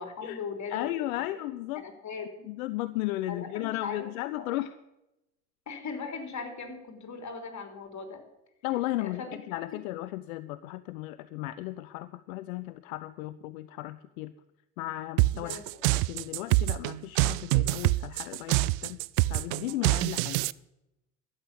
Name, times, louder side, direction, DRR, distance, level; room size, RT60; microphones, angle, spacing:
voice 1, 0.0-0.9 1.8-2.5 3.3-4.1 4.4-4.5 5.7-8.2 9.0-9.4 9.7-9.8 15.3-15.6, left 5 dB, 40° left, 5 dB, 3.4 m, -39 dB
voice 2, 0.7-1.9 2.4-4.7 8.6-14.3 14.8-15.6 15.9-19.0 19.3-20.4, left 16 dB, 75° left, 14 dB, 0.6 m, -35 dB
sound 1, 15.2-20.5, right 20 dB, 65° right, 0.5 m, -25 dB
12.5 x 8.9 x 8.5 m, 0.92 s
hypercardioid pair, 55°, 42 cm